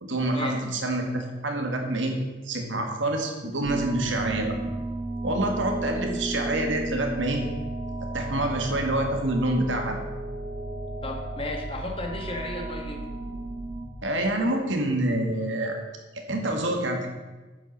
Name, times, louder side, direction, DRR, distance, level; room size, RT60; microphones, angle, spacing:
voice 1, 0.0-2.2 2.4-4.7 5.2-7.5 8.1-10.0 14.0-15.8 16.3-17.1, right 1 dB, 75° right, 3 dB, 1.9 m, -27 dB
sound 1, 3.6-13.9, right 2 dB, 40° right, 1.0 m, -33 dB
voice 2, 11.0-13.0, left 2 dB, 30° left, 2 dB, 1.5 m, -34 dB
9.5 x 7.3 x 6.6 m, 1.3 s
head